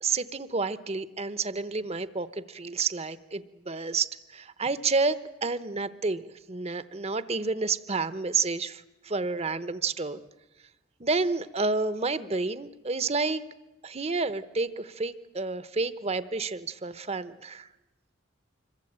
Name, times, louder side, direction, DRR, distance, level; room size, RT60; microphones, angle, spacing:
voice 1, 0.0-10.2 11.0-13.4 13.8-17.7, right 4 dB, 35° right, 14 dB, 0.9 m, -30 dB
26.0 x 22.5 x 8.8 m, 1.0 s
head